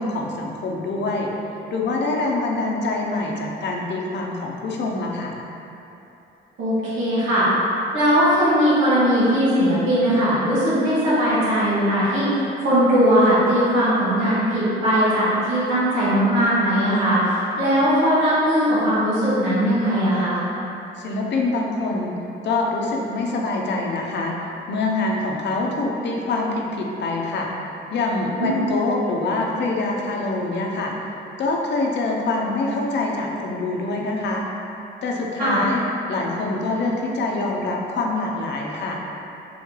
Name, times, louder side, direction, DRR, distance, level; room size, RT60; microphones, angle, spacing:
voice 1, 0.0-1.3 1.7-5.3 21.0-22.2 22.4-24.4 24.7-27.5 27.9-30.9 31.4-34.4 35.0-35.8 36.1-39.0, left 2 dB, 60° left, -1 dB, 0.6 m, -25 dB
voice 2, 6.6-7.5 7.9-12.3 12.6-20.4 28.4-28.5 35.4-35.6, equal, 80° right, -11 dB, 1.3 m, -19 dB
3.4 x 3.1 x 3.7 m, 3.0 s
cardioid pair, 90°, 20 cm